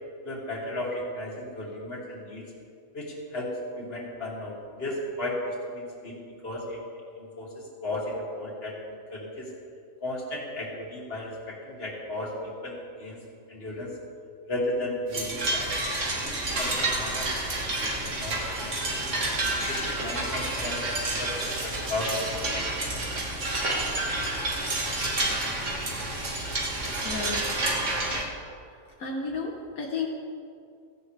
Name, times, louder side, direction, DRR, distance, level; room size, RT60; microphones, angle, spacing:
voice 1, 0.2-2.4 2.9-6.8 7.2-8.7 9.1-9.5 10.0-13.2 13.5-13.9 14.5-15.7 16.2-17.3 17.8-18.7 19.0-19.2 19.6-22.5, left 1 dB, 45° left, -4 dB, 2.8 m, -35 dB
sound 1, 15.1-28.2, right 2 dB, 60° right, 2.1 m, -29 dB
voice 2, 26.9-27.5 29.0-30.1, left 4 dB, 80° left, 0 dB, 1.5 m, -32 dB
16.5 x 15.0 x 3.3 m, 2.4 s
omnidirectional pair, 1.5 m